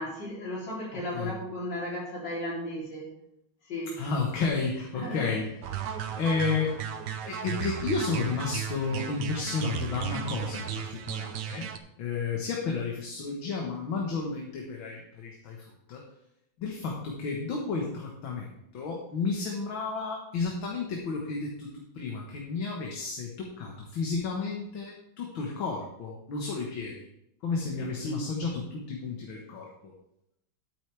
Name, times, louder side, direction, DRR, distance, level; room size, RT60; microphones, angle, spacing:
voice 1, 0.0-3.1 3.6-4.0 4.9-5.4 27.8-28.4, left 1 dB, 55° left, -4 dB, 4.2 m, -35 dB
voice 2, 4.0-5.5 6.2-6.8 7.2-16.0 16.6-27.1 27.4-29.9, left 4 dB, 70° left, 0 dB, 2.1 m, -32 dB
sound 1, 5.6-11.8, right 9 dB, 65° right, 1.2 m, -35 dB
12.0 x 9.4 x 3.4 m, 0.80 s
omnidirectional pair, 2.3 m